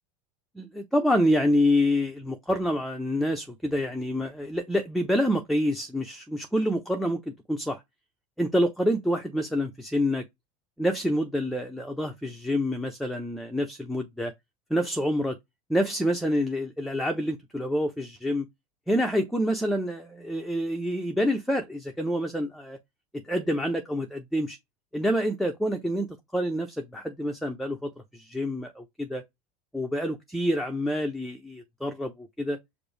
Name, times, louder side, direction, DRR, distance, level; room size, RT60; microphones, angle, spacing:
voice 1, 0.6-7.8 8.4-10.2 10.8-14.3 14.7-15.4 15.7-18.5 18.9-22.8 23.2-24.6 24.9-29.2 29.7-32.6, equal, ahead, 0.5 m, -27 dB
5.1 x 2.0 x 3.1 m
supercardioid pair, 105°, 20 cm